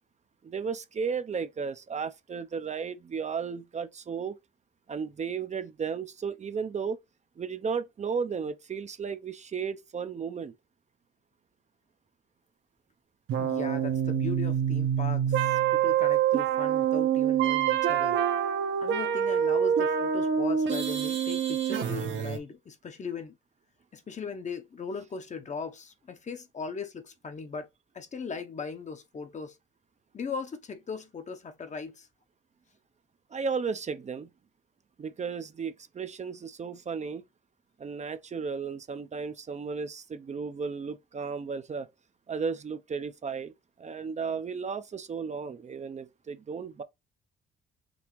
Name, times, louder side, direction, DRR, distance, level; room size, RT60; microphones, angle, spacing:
voice 1, 0.4-4.4 4.9-7.0 7.4-10.5 33.3-34.3 35.0-37.2 37.8-41.9 42.3-43.5 43.8-46.8, right 5 dB, 35° right, 0.6 m, -34 dB
sound 1, 13.3-22.4, right 9 dB, 75° right, 1.0 m, -26 dB
voice 2, 13.4-18.2 18.8-23.4 23.9-27.7 27.9-29.6 30.1-32.1, left 5 dB, 35° left, 0.9 m, -38 dB
5.2 x 2.8 x 3.1 m
cardioid pair, 90°, 20 cm